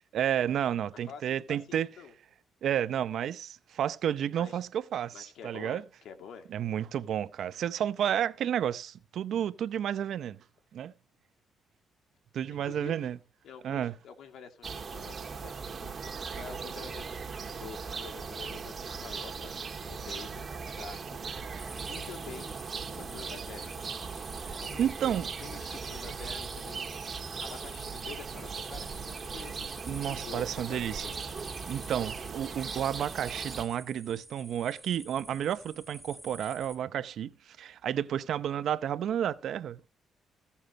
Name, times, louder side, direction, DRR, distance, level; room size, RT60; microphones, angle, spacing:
voice 1, 0.1-1.9 2.6-5.8 6.5-10.4 10.7-10.9 12.3-13.2 13.6-13.9 24.4-24.5 24.8-25.3 29.9-31.1 31.7-39.9, right 10 dB, 70° right, 0.7 m, -31 dB
voice 2, 1.1-2.1 4.4-4.6 5.1-6.5 12.5-13.1 13.4-16.1 16.3-17.3 17.6-19.5 19.8-21.2 21.9-22.5 22.9-23.9 24.6-24.9 25.4-26.9 27.4-31.3, left 7 dB, 75° left, 2.5 m, -48 dB
sound 1, 14.6-33.6, right 5 dB, 40° right, 1.8 m, -39 dB
sound 2, 21.6-36.8, right 1 dB, 5° right, 5.1 m, -50 dB
15.5 x 7.2 x 4.2 m
cardioid pair, 90°, 0 cm